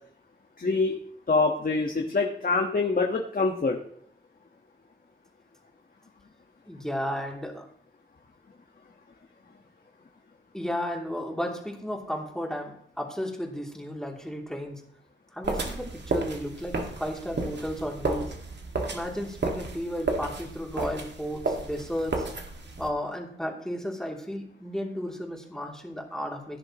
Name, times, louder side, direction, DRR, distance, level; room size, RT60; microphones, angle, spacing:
voice 1, 0.6-0.9 1.3-3.8, left 3 dB, 45° left, 2 dB, 1.4 m, -25 dB
voice 2, 6.7-7.7 10.5-14.8 15.3-18.3 18.9-22.3 22.8-26.6, equal, 5° left, -1 dB, 2.8 m, -33 dB
sound 1, 15.4-22.9, right 3 dB, 60° right, 1.9 m, -32 dB
16.5 x 10.5 x 3.0 m, 0.66 s
wide cardioid pair, 80°, 20 cm